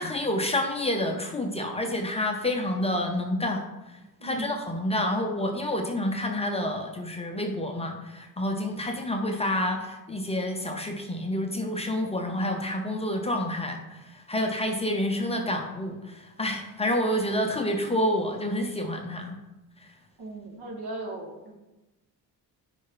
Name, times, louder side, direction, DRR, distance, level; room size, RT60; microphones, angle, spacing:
voice 1, 0.0-3.6 4.2-19.4, left 1 dB, 15° left, 3 dB, 0.7 m, -28 dB
voice 2, 4.2-4.5 20.2-21.5, right 2 dB, 80° right, 0 dB, 2.2 m, -37 dB
9.8 x 5.4 x 3.9 m, 1.0 s
cardioid pair, 175°, 39 cm